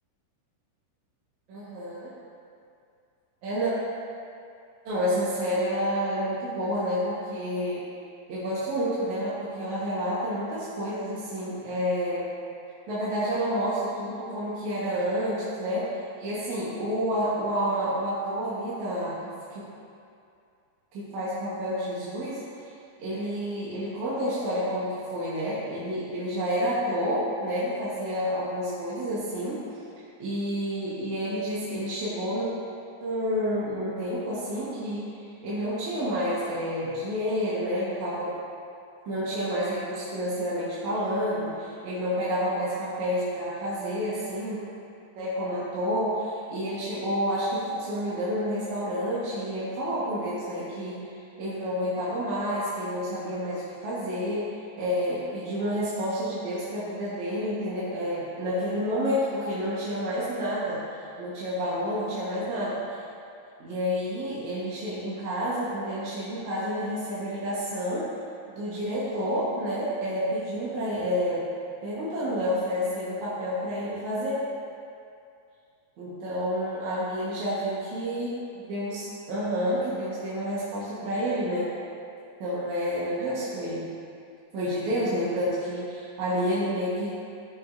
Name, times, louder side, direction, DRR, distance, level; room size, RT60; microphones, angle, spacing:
voice 1, 1.5-2.1 3.4-3.7 4.9-7.8 8.3-12.2 12.9-15.9 16.2-19.1 19.5-19.7 20.9-22.4 23.0-29.6 30.2-32.5 33.0-38.3 39.1-44.6 45.2-51.0 51.4-54.4 54.8-60.8 61.2-63.0 63.6-68.0 68.6-71.4 71.8-74.4 76.0-78.3 78.7-81.7 82.4-83.9 84.5-87.1, equal, 60° right, -9 dB, 2.2 m, -29 dB
14.0 x 5.9 x 2.6 m, 2.5 s
omnidirectional pair, 4.8 m